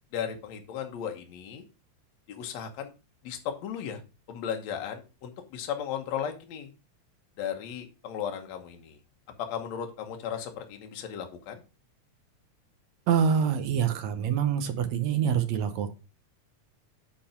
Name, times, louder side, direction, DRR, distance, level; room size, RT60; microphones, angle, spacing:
voice 1, 0.1-1.6 2.3-2.9 3.2-4.0 4.3-6.7 7.4-9.0 9.4-11.6, left 8 dB, 70° left, 4 dB, 2.3 m, -35 dB
voice 2, 13.1-15.9, right 7 dB, 70° right, 10 dB, 2.0 m, -25 dB
8.7 x 3.9 x 5.6 m, 0.31 s
omnidirectional pair, 3.4 m